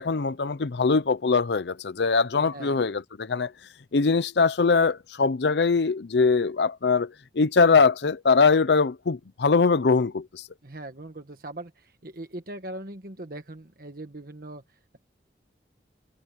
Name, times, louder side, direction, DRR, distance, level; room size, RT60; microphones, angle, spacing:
voice 1, 0.0-3.5 3.9-10.4, left 4 dB, 70° left, 0.6 m, -22 dB
voice 2, 10.6-15.0, right 1 dB, 50° right, 1.4 m, -40 dB
head